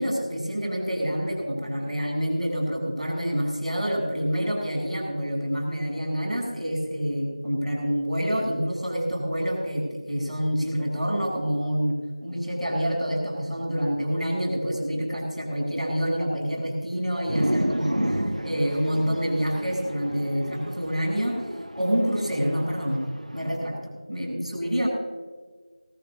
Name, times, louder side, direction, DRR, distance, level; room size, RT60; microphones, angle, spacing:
voice 1, 0.0-12.0 12.2-21.4 21.8-23.0 23.3-24.9, equal, ahead, -19 dB, 5.2 m, -27 dB
sound 1, 17.3-23.6, equal, 80° right, 1.6 m, -31 dB
21.5 x 15.0 x 2.8 m, 1.5 s
figure-of-eight pair, 175°, 4 cm